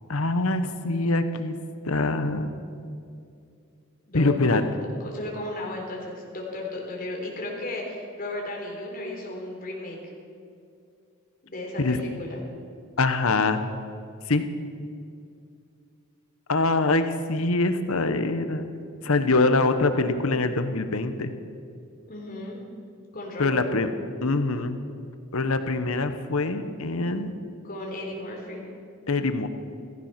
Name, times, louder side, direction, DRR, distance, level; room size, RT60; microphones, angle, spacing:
voice 1, 0.1-1.6 1.8-2.5 4.1-4.6 11.8-12.0 13.0-13.6 14.3-14.4 16.5-18.6 19.0-21.3 23.4-23.9 24.2-24.8 25.3-27.3 29.1-29.5, left 3 dB, 70° left, 9 dB, 1.1 m, -24 dB
voice 2, 4.1-4.6 5.0-10.0 11.4-12.4 22.1-22.6 23.1-23.6 27.6-28.7, left 2 dB, 40° left, -1 dB, 3.6 m, -35 dB
15.5 x 15.0 x 5.9 m, 2.4 s
head